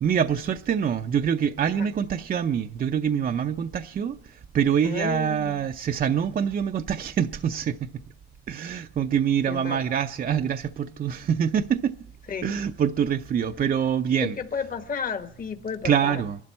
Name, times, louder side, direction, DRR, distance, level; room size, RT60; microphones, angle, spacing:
voice 1, 0.0-7.8 8.5-11.9 12.4-14.3 15.8-16.4, right 8 dB, 45° right, 0.6 m, -25 dB
voice 2, 4.8-5.6 9.5-9.8 12.3-12.6 14.2-16.2, left 6 dB, 45° left, 1.5 m, -32 dB
27.0 x 12.0 x 4.3 m
cardioid pair, 90°, 20 cm